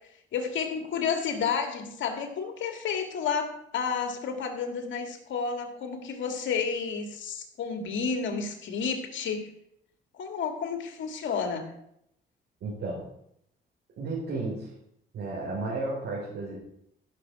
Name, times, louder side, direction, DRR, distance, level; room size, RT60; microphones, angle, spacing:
voice 1, 0.3-9.5 10.1-11.7, left 6 dB, 70° left, 4 dB, 2.3 m, -31 dB
voice 2, 12.6-13.0 14.0-14.7 15.1-16.6, right 3 dB, 75° right, -6 dB, 5.0 m, -33 dB
15.0 x 6.8 x 5.0 m, 0.75 s
cardioid pair, 90°, 20 cm